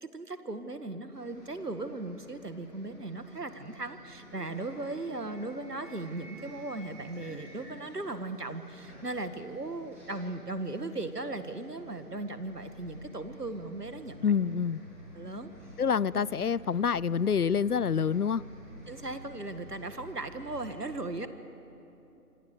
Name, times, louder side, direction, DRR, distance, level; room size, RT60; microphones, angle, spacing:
voice 1, 0.0-14.3 15.2-15.5 16.1-16.2 18.9-21.3, right 2 dB, 75° right, 9 dB, 2.0 m, -37 dB
Bus, 1.1-20.7, equal, 10° right, 5.0 m, -50 dB
voice 2, 14.2-14.8 15.8-18.4, left 6 dB, 70° left, 23 dB, 0.5 m, -27 dB
27.0 x 25.5 x 6.8 m, 2.9 s
figure-of-eight pair, 170°, 48 cm